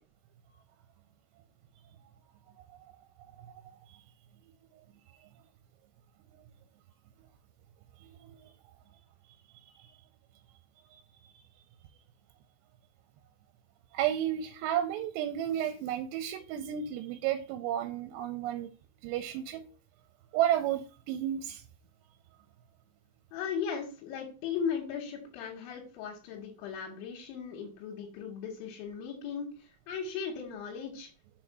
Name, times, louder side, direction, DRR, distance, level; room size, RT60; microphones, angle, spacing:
voice 1, 8.0-8.5 9.5-9.9 13.9-18.7 19.0-19.6 20.3-21.6, right 11 dB, 85° right, 9 dB, 2.6 m, -32 dB
voice 2, 23.3-31.1, left 7 dB, 85° left, 0 dB, 3.5 m, -37 dB
6.4 x 4.1 x 4.6 m, 0.36 s
omnidirectional pair, 5.2 m